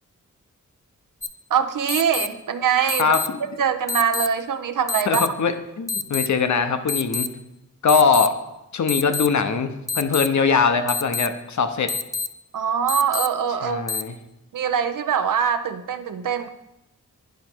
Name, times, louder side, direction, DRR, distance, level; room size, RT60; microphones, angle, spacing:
sound 1, 1.2-1.3 1.9-2.3 2.9-3.3 3.9-4.3 4.9-5.3 5.9-6.3 6.9-7.3 7.9-8.3 8.9-9.3 9.9-10.3 10.9-11.3 11.9-12.3 12.9-13.3 13.9-14.0, left 4 dB, 10° left, 0.4 m, -26 dB
voice 1, 1.5-3.1 3.6-5.3 12.5-13.8 14.5-16.5, right 7 dB, 75° right, 9 dB, 0.7 m, -23 dB
voice 2, 3.0-3.4 5.1-7.3 7.8-8.4 8.7-11.9 13.6-14.1, left 5 dB, 60° left, 9 dB, 0.8 m, -21 dB
10.5 x 5.2 x 4.5 m, 0.90 s
wide cardioid pair, 105°, 32 cm